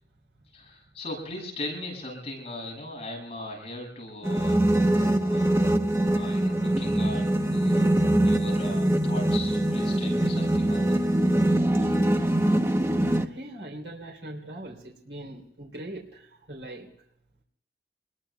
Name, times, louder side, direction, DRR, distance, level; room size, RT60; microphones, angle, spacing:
voice 1, 0.5-5.6 6.1-7.9 8.2-11.0, left 1 dB, 35° left, 0 dB, 7.5 m, -39 dB
sound 1, 4.2-13.3, right 1 dB, 15° right, 1.0 m, -23 dB
voice 2, 13.0-16.9, right 1 dB, 80° right, 2 dB, 3.6 m, -41 dB
27.5 x 21.5 x 2.4 m, 0.74 s
head